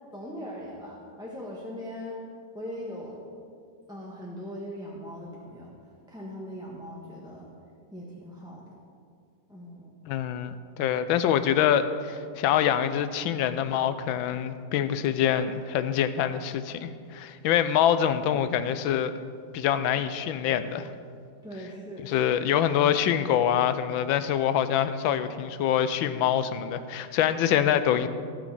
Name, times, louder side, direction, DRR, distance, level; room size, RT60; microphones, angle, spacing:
voice 1, 0.1-2.2 2.5-3.2 3.9-5.7 6.1-7.5 7.9-8.6 9.5-9.9 21.4-22.4, equal, 5° right, -4 dB, 1.0 m, -40 dB
voice 2, 10.1-19.1 19.5-20.9 22.0-28.1, left 9 dB, 90° left, 12 dB, 1.4 m, -25 dB
17.0 x 6.3 x 4.8 m, 2.2 s
omnidirectional pair, 2.1 m